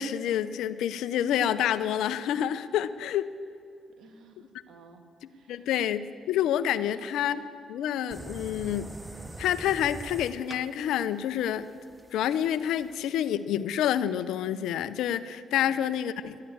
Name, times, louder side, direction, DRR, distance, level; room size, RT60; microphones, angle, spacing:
voice 1, 0.0-3.3 5.5-7.4 7.7-8.9 9.4-11.7 12.1-16.4, left 10 dB, 80° left, 14 dB, 0.6 m, -28 dB
voice 2, 4.0-5.0 5.3-5.7 6.8-7.1 15.5-15.8, right 4 dB, 75° right, 6 dB, 1.6 m, -53 dB
sound 1, 8.1-13.1, right 2 dB, 20° right, 0.9 m, -44 dB
12.5 x 11.0 x 8.4 m, 2.4 s
supercardioid pair, 55°, 0 cm